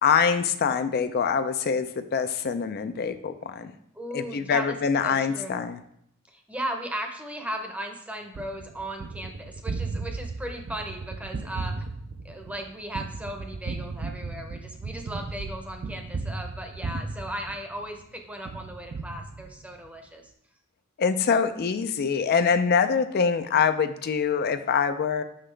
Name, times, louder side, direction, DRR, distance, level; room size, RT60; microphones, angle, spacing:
voice 1, 0.0-3.7 4.1-5.8 21.0-25.2, left 6 dB, 45° left, 9 dB, 0.4 m, -24 dB
voice 2, 3.9-4.8 5.0-5.7 6.3-11.9 12.2-20.3, right 1 dB, 5° right, 4 dB, 0.7 m, -37 dB
Gunshot gunfire, 8.3-18.0 18.4-19.9, right 3 dB, 45° right, 0.4 m, -35 dB
5.9 x 5.7 x 3.3 m, 0.71 s
head